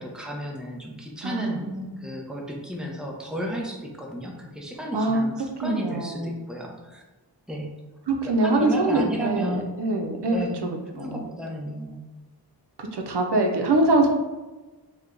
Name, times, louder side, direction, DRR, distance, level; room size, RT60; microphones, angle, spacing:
voice 1, 0.0-7.0 7.5-7.7 8.2-9.8 10.3-10.7 10.9-12.0, equal, ahead, -1 dB, 0.6 m, -33 dB
voice 2, 1.2-2.0 4.9-5.3 5.6-6.4 8.1-11.2 12.8-14.1, right 2 dB, 70° right, 2 dB, 0.6 m, -24 dB
3.2 x 2.2 x 3.7 m, 1.2 s
wide cardioid pair, 50°, 43 cm